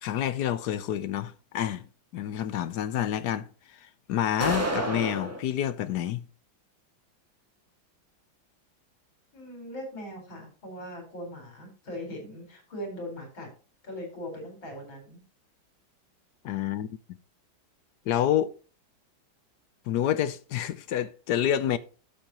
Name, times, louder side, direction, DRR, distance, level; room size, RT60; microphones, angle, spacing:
voice 1, 0.0-1.9 2.1-6.2 16.4-17.2 18.1-18.5 19.9-21.8, left 11 dB, 70° left, 1.1 m, -28 dB
sound 1, 4.4-5.4, right 1 dB, 10° right, 1.5 m, -29 dB
voice 2, 9.3-13.5 13.8-15.2, equal, 85° left, 5.2 m, -40 dB
11.5 x 7.7 x 2.9 m
omnidirectional pair, 2.1 m